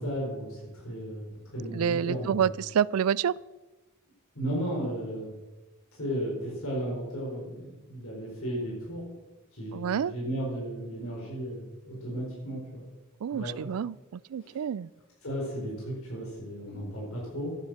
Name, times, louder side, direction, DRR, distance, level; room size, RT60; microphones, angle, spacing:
voice 1, 0.0-2.4 4.3-5.3 5.9-9.0 9.5-12.9 13.3-13.5 14.4-14.6 15.2-17.6, equal, 75° left, -3 dB, 4.8 m, -34 dB
voice 2, 1.7-3.3 9.7-10.1 13.2-14.9, right 8 dB, 80° right, 22 dB, 0.4 m, -28 dB
13.0 x 9.4 x 6.4 m, 1.1 s
head